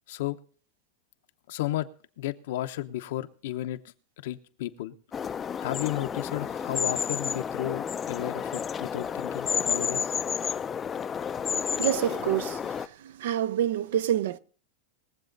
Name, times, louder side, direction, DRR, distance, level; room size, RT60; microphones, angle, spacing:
voice 1, 1.5-1.9 2.2-3.8 4.2-4.9 5.6-10.1, left 14 dB, 70° left, 0.9 m, -33 dB
sound 1, 5.1-12.9, left 7 dB, 20° left, 0.5 m, -31 dB
voice 2, 11.8-12.7 13.0-14.4, right 11 dB, 75° right, 0.6 m, -27 dB
21.0 x 7.6 x 4.0 m
supercardioid pair, 145°, 0 cm